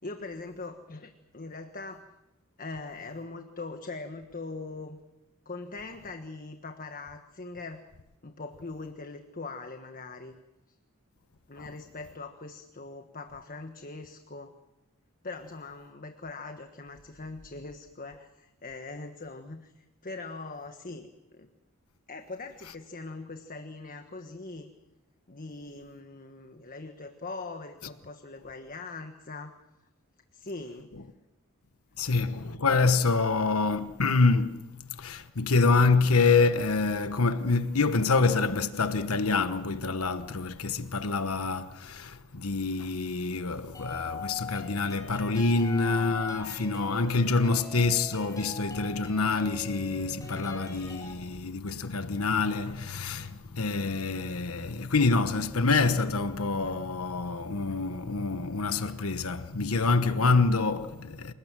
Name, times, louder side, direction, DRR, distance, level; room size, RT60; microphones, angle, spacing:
voice 1, 0.0-2.1 2.6-5.0 5.4-7.8 8.2-10.3 11.5-14.5 15.2-21.5 22.1-24.7 25.3-29.5 30.3-30.9, left 3 dB, 40° left, 1.4 m, -41 dB
voice 2, 32.0-61.3, left 3 dB, 90° left, 1.2 m, -26 dB
sound 1, 43.7-51.1, left 3 dB, 15° left, 5.8 m, -42 dB
28.0 x 18.5 x 7.6 m
head